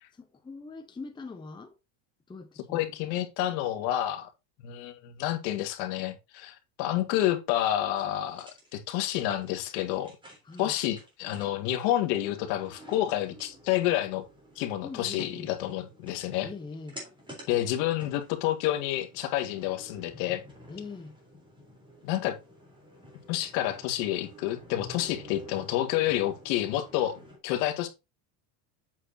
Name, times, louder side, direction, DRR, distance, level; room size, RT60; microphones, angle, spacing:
voice 1, 0.1-1.8 2.3-2.9 10.4-10.8 14.8-15.5 16.4-17.0 20.7-21.2, left 4 dB, 10° left, 0.8 m, -42 dB
voice 2, 2.7-4.3 4.6-10.1 10.6-14.2 14.6-16.5 17.5-20.4 22.0-22.4 23.3-27.9, left 13 dB, 75° left, 1.9 m, -29 dB
sound 1, 7.9-27.4, equal, 10° right, 3.6 m, -50 dB
8.3 x 6.6 x 2.7 m
cardioid pair, 145°, 50 cm